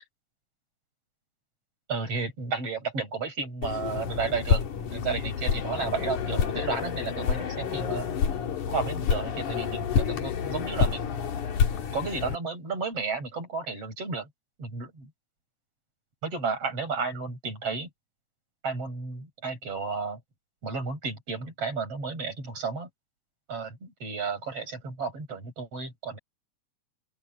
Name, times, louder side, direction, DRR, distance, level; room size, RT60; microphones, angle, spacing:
voice 1, 1.9-8.1 8.7-11.1 11.9-14.3 14.6-15.1 16.2-17.9 18.6-20.2 20.6-22.9 23.5-26.2, right 4 dB, 50° right, 8.8 m, -32 dB
sound 1, 3.6-12.4, left 7 dB, 85° left, 3.7 m, -28 dB
open air
omnidirectional pair, 3.4 m